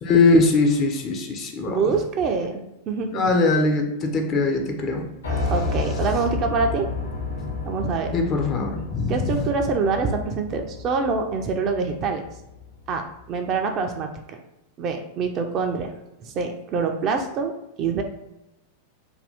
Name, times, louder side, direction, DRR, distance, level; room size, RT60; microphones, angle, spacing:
voice 1, 0.0-1.8 3.1-5.0 7.4-7.5 8.1-9.5, left 3 dB, 30° left, 2 dB, 0.4 m, -21 dB
voice 2, 1.7-3.2 5.5-6.9 7.7-8.1 9.1-12.2 12.9-13.0 13.3-14.1 14.8-15.9 16.2-17.5 17.8-18.0, right 4 dB, 35° right, 4 dB, 0.3 m, -25 dB
Piano, 5.2-13.2, left 3 dB, 70° left, 0.7 m, -31 dB
2.5 x 2.3 x 3.4 m, 0.90 s
figure-of-eight pair, 90°, 0 cm